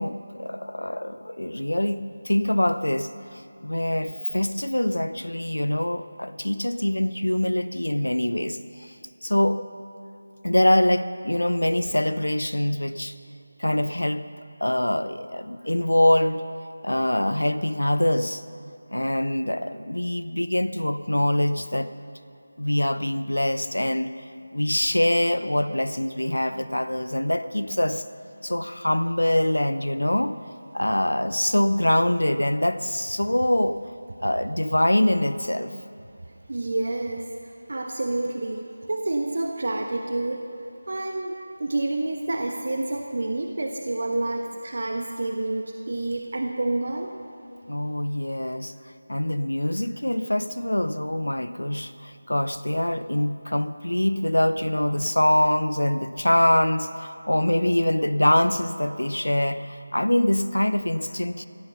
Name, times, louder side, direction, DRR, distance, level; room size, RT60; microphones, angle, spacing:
voice 1, 0.0-9.0 9.2-9.6 10.4-13.2 13.6-14.3 14.6-16.4 16.8-18.4 18.9-21.9 22.6-24.2 24.5-28.0 28.4-30.4 30.7-33.8 34.2-35.8 47.7-48.7 49.1-61.5, left 1 dB, 85° left, 13 dB, 0.6 m, -24 dB
voice 2, 36.5-40.5 40.9-47.1, right 2 dB, 55° right, 3 dB, 1.1 m, -28 dB
16.5 x 14.5 x 5.8 m, 2.7 s
figure-of-eight pair, 165°, 0 cm